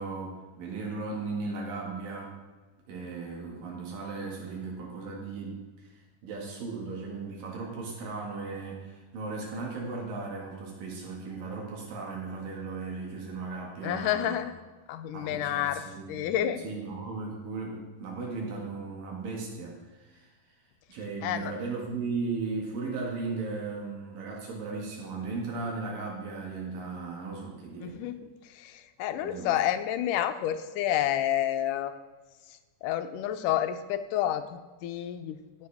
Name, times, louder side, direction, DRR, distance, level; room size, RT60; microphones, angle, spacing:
voice 1, 0.0-2.3 2.9-5.9 6.2-14.4 15.1-20.3 20.9-28.0 29.2-29.5, right 4 dB, 85° right, -2 dB, 3.6 m, -36 dB
voice 2, 13.8-14.5 14.9-15.8 16.1-16.7 21.2-21.5 27.8-31.9 32.5-35.7, left 11 dB, 80° left, 9 dB, 2.2 m, -30 dB
16.0 x 7.8 x 3.5 m, 1.3 s
omnidirectional pair, 3.8 m